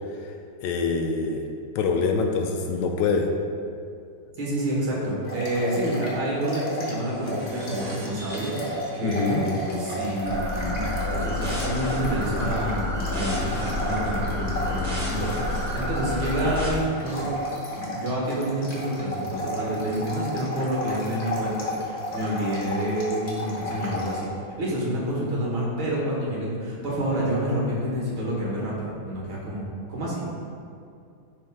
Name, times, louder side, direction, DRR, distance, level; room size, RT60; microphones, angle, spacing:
voice 1, 0.6-1.4 1.7-3.3 9.0-9.4, left 4 dB, 75° left, 3 dB, 1.1 m, -25 dB
voice 2, 4.4-17.3 17.7-24.3 24.6-30.2, right 1 dB, 75° right, -5 dB, 2.3 m, -28 dB
sound 1, 5.2-7.0 7.3-24.2, equal, 40° left, 1.1 m, -33 dB
sound 2, 7.0-11.9, right 1 dB, 90° right, 1.7 m, -47 dB
sound 3, 10.2-16.7, left 2 dB, 30° right, 0.7 m, -29 dB
10.0 x 3.4 x 3.6 m, 2.4 s
omnidirectional pair, 2.3 m